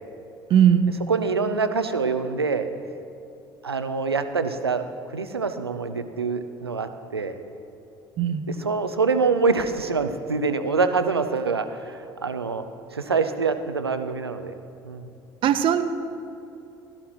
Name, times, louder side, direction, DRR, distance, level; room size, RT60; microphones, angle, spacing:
voice 1, 0.5-0.9 8.2-8.4 15.4-15.8, right 9 dB, 40° right, 10 dB, 0.7 m, -18 dB
voice 2, 1.1-2.7 3.6-4.8 5.1-7.4 8.5-12.6 12.9-14.5 14.8-15.1, right 4 dB, 85° right, 9 dB, 0.6 m, -25 dB
16.0 x 12.5 x 3.0 m, 2.7 s
figure-of-eight pair, 60°, 13 cm